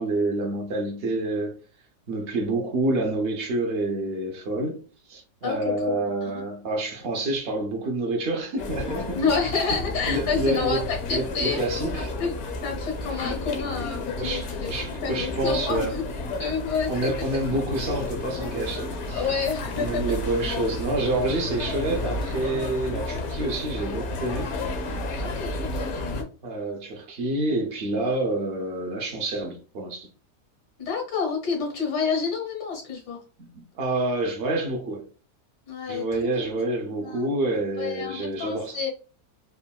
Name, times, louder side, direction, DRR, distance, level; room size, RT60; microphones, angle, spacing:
voice 1, 0.0-1.6 2.1-9.2 9.5-9.8 10.1-12.1 13.1-13.3 14.2-16.0 16.9-19.4 19.7-24.6 26.4-30.1 33.5-35.1 35.9-38.8, right 2 dB, 85° right, 0.5 m, -28 dB
voice 2, 5.4-6.4 9.1-11.7 11.9-12.3 12.6-14.7 15.0-16.1 16.4-17.4 19.1-20.0 25.2-26.3 30.8-33.2 35.7-36.0 36.3-36.4 37.0-37.3 37.8-38.9, left 5 dB, 85° left, 1.7 m, -29 dB
sound 1, 8.6-26.2, left 2 dB, 65° left, 0.7 m, -32 dB
3.5 x 2.2 x 2.2 m
omnidirectional pair, 1.7 m